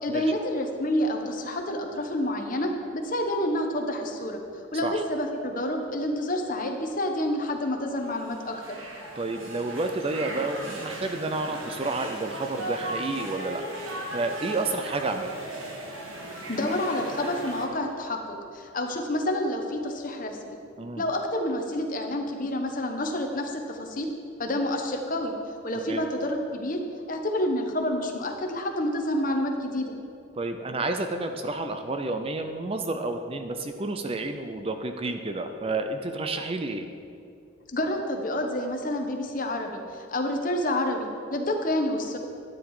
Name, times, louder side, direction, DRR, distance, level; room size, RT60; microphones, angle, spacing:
voice 1, 0.0-4.4 4.7-8.8 16.3-20.6 21.0-24.1 24.4-25.3 25.6-26.8 27.1-29.9 37.7-42.2, left 1 dB, 40° left, 3 dB, 1.1 m, -28 dB
sound 1, 8.0-17.7, right 1 dB, 80° right, 1.7 m, -37 dB
voice 2, 9.2-13.6 14.1-15.4 20.8-21.0 25.9-26.0 30.3-36.9, right 2 dB, 25° right, 6 dB, 0.5 m, -30 dB
12.5 x 9.3 x 4.8 m, 2.5 s
head